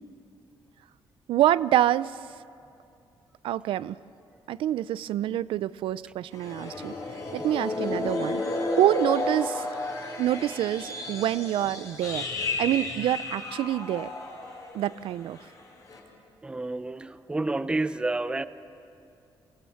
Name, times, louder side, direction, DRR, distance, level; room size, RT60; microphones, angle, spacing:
voice 1, 1.3-2.2 3.4-4.0 4.5-6.9 7.3-8.4 8.7-9.7 10.2-12.2 12.6-14.1 14.7-15.4, right 13 dB, 85° right, 18 dB, 0.4 m, -26 dB
sound 1, 6.3-14.9 15.2-15.5 15.9-16.0, left 2 dB, 40° left, 3.5 m, -32 dB
voice 2, 16.4-18.5, right 2 dB, 10° right, 14 dB, 0.5 m, -29 dB
25.5 x 16.0 x 7.1 m, 2.6 s
cardioid pair, 150°, 9 cm